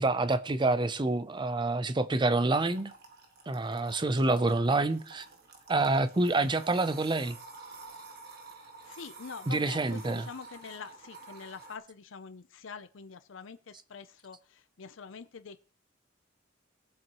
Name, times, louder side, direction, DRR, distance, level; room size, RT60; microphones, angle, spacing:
voice 1, 0.0-2.9 3.5-5.2 5.7-7.4 9.5-10.3, right 2 dB, 25° right, 0.6 m, -27 dB
sound 1, 2.7-11.8, right 4 dB, 55° right, 1.8 m, -50 dB
voice 2, 8.8-15.6, left 5 dB, 75° left, 0.6 m, -45 dB
19.0 x 7.6 x 3.0 m
head